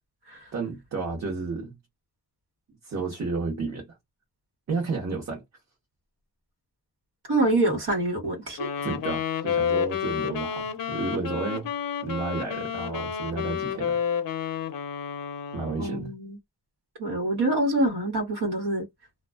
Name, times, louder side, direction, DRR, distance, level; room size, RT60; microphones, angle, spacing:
voice 1, 0.5-1.8 2.8-4.0 4.7-5.4 8.8-11.7 12.0-14.0 15.5-16.1, right 4 dB, 45° right, 0.8 m, -32 dB
voice 2, 7.3-8.6 15.8-16.4 17.0-18.9, right 1 dB, 90° right, 1.2 m, -25 dB
Wind instrument woodwind instrument, 8.6-16.0, left 7 dB, 60° left, 0.5 m, -30 dB
2.5 x 2.2 x 2.2 m
wide cardioid pair, 175°, 38 cm